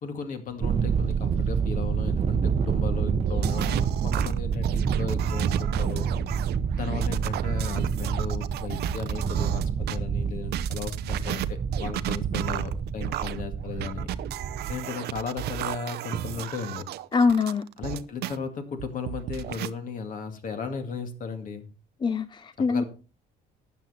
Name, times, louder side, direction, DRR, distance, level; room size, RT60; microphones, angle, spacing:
voice 1, 0.0-6.1 6.7-14.1 14.7-16.8 17.8-21.7 22.7-22.8, left 5 dB, 50° left, 2.2 m, -35 dB
Thunder, 0.6-14.8, right 6 dB, 35° right, 0.9 m, -28 dB
sound 1, 3.1-10.0 10.4-18.4 18.8-19.7, right 13 dB, 75° right, 0.7 m, -34 dB
voice 2, 17.1-17.6 22.0-22.8, left 4 dB, 25° left, 0.5 m, -23 dB
12.5 x 8.4 x 4.2 m
cardioid pair, 110°, 17 cm